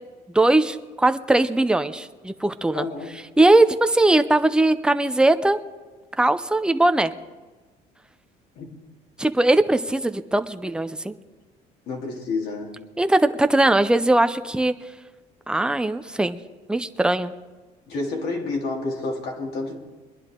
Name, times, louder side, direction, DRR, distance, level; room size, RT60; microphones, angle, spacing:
voice 1, 0.3-2.9 3.4-5.6 6.2-7.1 9.2-11.1 13.0-14.8 15.5-16.4 16.7-17.3, right 2 dB, 5° right, 9 dB, 0.6 m, -20 dB
voice 2, 2.7-3.1 8.5-8.7 11.9-12.8 17.9-19.8, left 3 dB, 70° left, -1 dB, 3.0 m, -29 dB
22.0 x 11.0 x 3.8 m, 1.3 s
cardioid pair, 110°, 17 cm